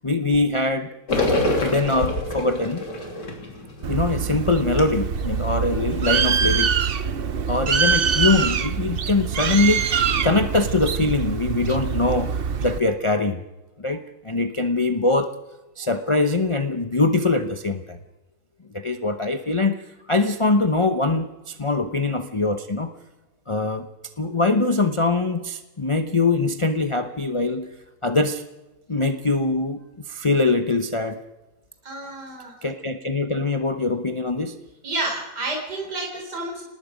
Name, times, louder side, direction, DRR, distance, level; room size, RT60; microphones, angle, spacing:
voice 1, 0.0-0.9 1.6-2.9 3.9-6.7 7.5-13.4 13.8-15.3 15.8-18.0 18.7-19.8 20.1-22.9 23.5-23.9 24.2-27.7 28.0-28.4 28.9-29.8 30.1-31.2 32.6-34.6, left 3 dB, 25° left, 8 dB, 0.7 m, -23 dB
sound 1, 1.1-5.4 5.8-5.9 6.3-6.5, left 1 dB, 85° left, 3.7 m, -26 dB
Bird, 3.8-12.8, right 7 dB, 45° right, 0.8 m, -24 dB
voice 2, 31.8-32.5 34.8-36.6, right 2 dB, 75° right, 0 dB, 4.6 m, -30 dB
27.0 x 19.5 x 5.2 m, 1.1 s
omnidirectional pair, 1.8 m